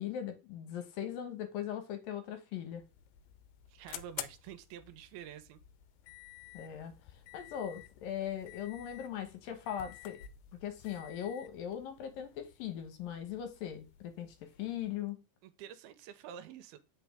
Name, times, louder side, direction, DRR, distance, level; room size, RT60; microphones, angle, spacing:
voice 1, 0.0-2.8 6.5-6.9 7.3-10.2 10.6-15.2, left 9 dB, 70° left, 2.6 m, -39 dB
sound 1, 2.7-15.1, left 13 dB, 90° left, 2.6 m, -52 dB
voice 2, 3.7-5.6 15.4-16.8, right 9 dB, 80° right, 2.6 m, -48 dB
8.4 x 5.7 x 3.5 m
omnidirectional pair, 4.4 m